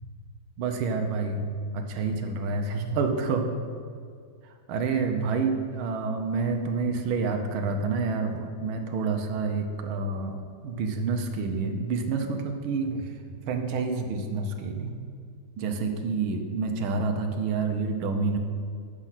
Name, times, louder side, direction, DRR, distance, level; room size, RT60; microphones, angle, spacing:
voice 1, 0.6-1.4 1.7-3.5 4.7-13.1 13.5-14.9 15.6-18.4, right 4 dB, 75° right, 5 dB, 1.6 m, -28 dB
7.9 x 6.3 x 5.8 m, 2.2 s
omnidirectional pair, 2.3 m